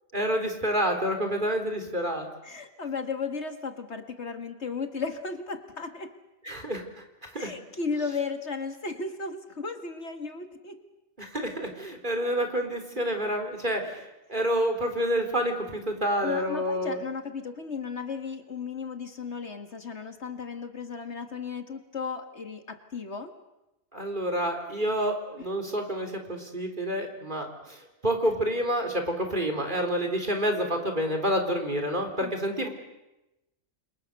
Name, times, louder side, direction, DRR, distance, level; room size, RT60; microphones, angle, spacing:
voice 1, 0.1-2.3 6.4-6.8 7.3-7.5 11.2-14.0 14.3-17.0 23.9-32.7, equal, 35° right, 3 dB, 4.1 m, -28 dB
voice 2, 2.4-6.1 7.3-10.8 16.2-23.3 32.2-32.7, left 4 dB, 55° left, 7 dB, 2.1 m, -35 dB
29.5 x 26.5 x 6.8 m, 0.96 s
omnidirectional pair, 1.4 m